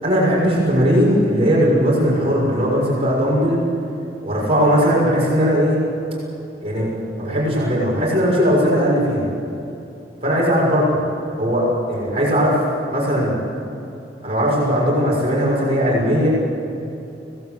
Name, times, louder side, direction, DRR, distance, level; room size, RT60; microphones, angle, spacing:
voice 1, 0.0-3.6 4.2-5.8 6.6-6.9 7.2-9.2 10.2-10.8 11.4-12.6 12.9-13.4 14.2-16.3, equal, 30° right, -4 dB, 6.7 m, -18 dB
25.0 x 18.0 x 8.2 m, 2.8 s
head